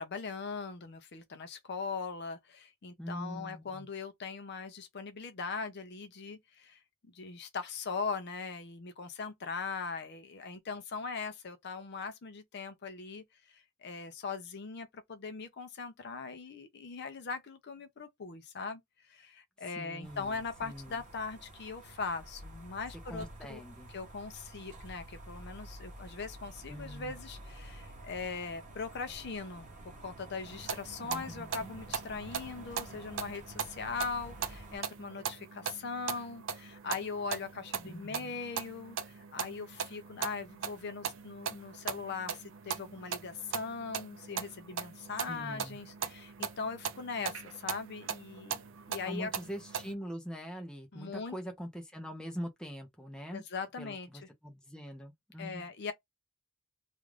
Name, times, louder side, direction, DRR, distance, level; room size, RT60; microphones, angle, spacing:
voice 1, 0.0-6.8 7.1-13.2 13.5-18.8 19.1-23.6 23.9-48.6 48.9-49.3 50.9-51.3 53.3-54.1 55.4-55.9, left 4 dB, 50° left, 0.5 m, -40 dB
voice 2, 3.0-3.9 19.7-21.0 23.1-23.9 26.7-27.1 31.0-31.7 37.8-38.4 45.3-45.8 49.0-53.4 53.8-55.7, equal, 5° left, 0.7 m, -43 dB
sound 1, 20.0-34.8, right 1 dB, 35° right, 0.8 m, -50 dB
sound 2, 30.5-49.9, right 7 dB, 55° right, 0.5 m, -40 dB
2.5 x 2.4 x 3.2 m
head